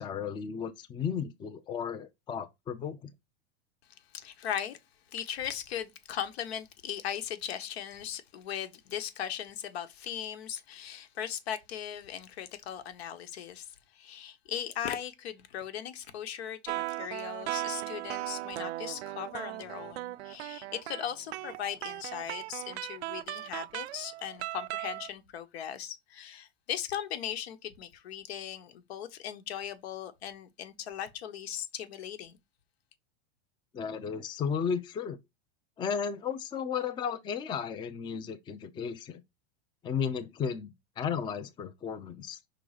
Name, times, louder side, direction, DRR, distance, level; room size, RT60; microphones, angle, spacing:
voice 1, 0.0-3.1 33.7-35.2 35.8-39.2 39.8-42.4, left 7 dB, 15° left, 0.5 m, -34 dB
voice 2, 4.1-4.8 5.1-32.4, left 9 dB, 80° left, 1.3 m, -38 dB
sound 1, 16.7-25.1, right 17 dB, 90° right, 0.5 m, -37 dB
5.5 x 3.8 x 4.9 m
supercardioid pair, 145°, 32 cm